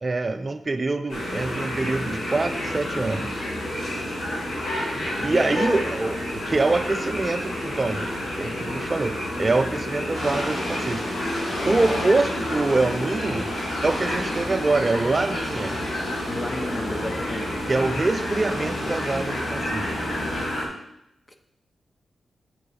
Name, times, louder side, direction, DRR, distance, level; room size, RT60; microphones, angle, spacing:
voice 1, 0.0-3.4 4.8-11.0 11.7-13.5 13.8-15.8 17.7-19.9, right 3 dB, 30° right, 9 dB, 0.4 m, -25 dB
sound 1, 1.1-20.6, left 1 dB, 80° left, 3.4 m, -29 dB
voice 2, 5.2-5.9 16.2-17.6 21.3-21.4, left 1 dB, 25° left, 6 dB, 0.8 m, -31 dB
Ocean, 10.1-20.4, equal, 65° left, 4.0 m, -35 dB
8.4 x 7.8 x 4.0 m, 0.81 s
wide cardioid pair, 110°, 0 cm